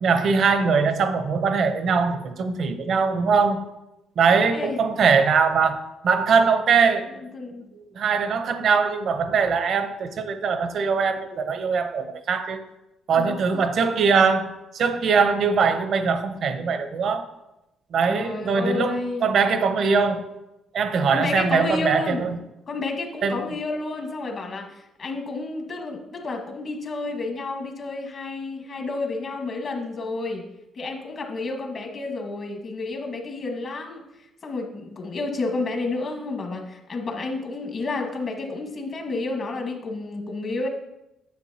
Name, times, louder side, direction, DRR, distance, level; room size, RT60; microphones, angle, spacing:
voice 1, 0.0-3.6 4.2-7.1 7.7-12.6 13.1-17.3 17.9-20.3 20.7-22.4 23.2-23.4, right 5 dB, 65° right, 0.7 m, -22 dB
voice 2, 7.3-7.7 13.1-13.6 18.1-19.3 21.1-22.3 22.7-30.4 30.7-40.7, left 3 dB, 50° left, 1.4 m, -30 dB
9.6 x 7.3 x 2.8 m
cardioid pair, 90°, 0 cm